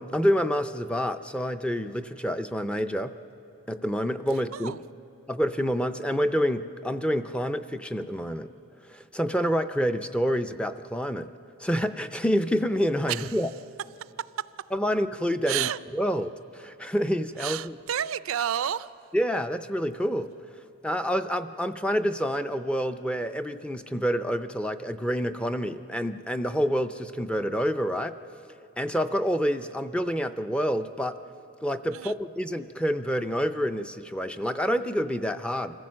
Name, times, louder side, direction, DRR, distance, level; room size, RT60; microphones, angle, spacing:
voice 1, 0.0-3.1 3.7-4.8 5.3-8.5 8.8-11.3 11.6-13.5 14.7-17.8 19.1-20.3 20.8-28.2 28.8-31.2 31.6-35.7, equal, 5° left, 8 dB, 0.4 m, -28 dB
voice 2, 15.5-15.8 17.4-18.9 31.9-32.1, right 10 dB, 70° right, 16 dB, 0.4 m, -30 dB
26.0 x 15.0 x 7.5 m, 2.8 s
head